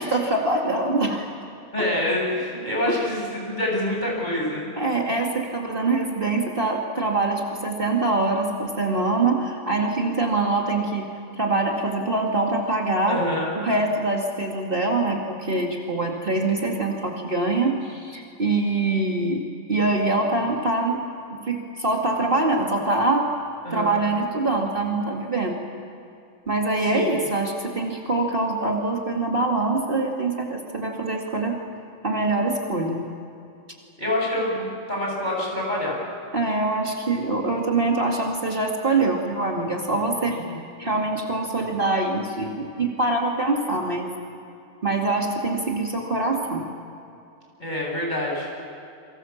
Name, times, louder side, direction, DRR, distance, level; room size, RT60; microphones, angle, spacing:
voice 1, 0.0-1.3 1.8-1.9 2.9-3.0 4.8-11.1 11.3-13.2 13.5-21.0 21.3-23.3 23.7-25.6 26.5-31.6 32.0-33.0 36.3-40.4 40.8-44.1 44.8-46.7, right 2 dB, 40° right, 0 dB, 2.4 m, -24 dB
voice 2, 1.7-4.8 13.1-13.5 23.6-23.9 26.8-27.1 34.0-36.0 40.3-40.6 47.6-48.5, left 1 dB, 30° left, -2 dB, 7.8 m, -26 dB
29.5 x 24.5 x 7.2 m, 2.6 s
omnidirectional pair, 1.4 m